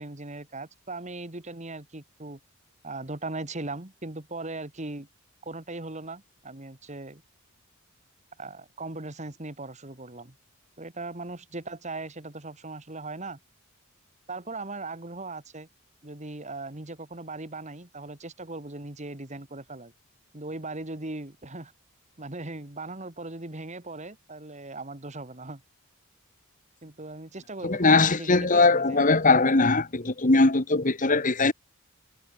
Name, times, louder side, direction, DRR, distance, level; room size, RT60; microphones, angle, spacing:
voice 1, 0.0-2.4 2.8-5.1 5.4-7.2 8.4-10.3 10.8-13.4 14.3-15.7 16.0-19.9 20.3-21.7 22.2-25.6 26.8-29.3, right 2 dB, 30° right, 1.9 m, -39 dB
voice 2, 27.6-31.5, left 3 dB, 35° left, 1.4 m, -21 dB
head